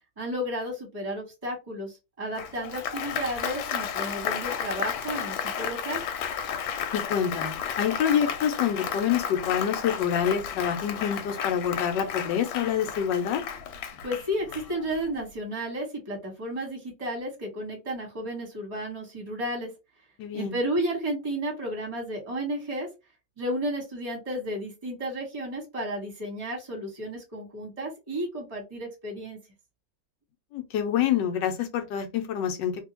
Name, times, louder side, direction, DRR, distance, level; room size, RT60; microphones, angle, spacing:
voice 1, 0.2-6.0 14.0-19.7 20.3-22.9 23.4-29.4, right 1 dB, 25° right, 1.0 m, -32 dB
Applause, 2.3-15.1, left 8 dB, 90° left, 1.4 m, -33 dB
voice 2, 6.9-13.4 20.2-20.6 30.5-32.8, left 9 dB, 70° left, 1.3 m, -27 dB
2.8 x 2.7 x 2.9 m
omnidirectional pair, 2.1 m